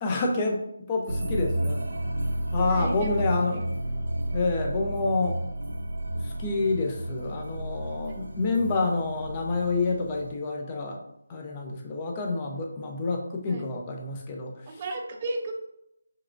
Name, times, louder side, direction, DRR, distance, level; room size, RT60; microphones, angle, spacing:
voice 1, 0.0-1.8 2.5-3.6 4.3-5.4 6.1-11.0 11.3-14.8, left 3 dB, 20° left, 1 dB, 0.7 m, -28 dB
sound 1, 1.1-10.3, right 1 dB, 80° right, 0.8 m, -31 dB
voice 2, 2.7-3.1 13.5-13.7 14.7-15.5, right 2 dB, 30° right, 3 dB, 0.6 m, -33 dB
4.7 x 3.3 x 2.6 m, 0.80 s
figure-of-eight pair, 160°, 0 cm